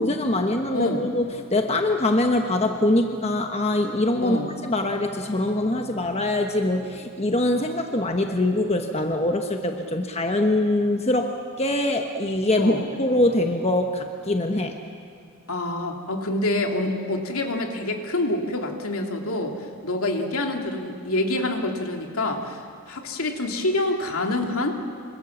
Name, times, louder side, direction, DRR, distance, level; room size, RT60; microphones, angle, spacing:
voice 1, 0.0-14.8, left 1 dB, 30° left, 4 dB, 1.2 m, -23 dB
voice 2, 0.7-1.1 4.2-4.5 12.6-12.9 15.5-24.9, left 2 dB, 70° left, 3 dB, 2.6 m, -27 dB
26.5 x 25.0 x 7.3 m, 2.3 s
head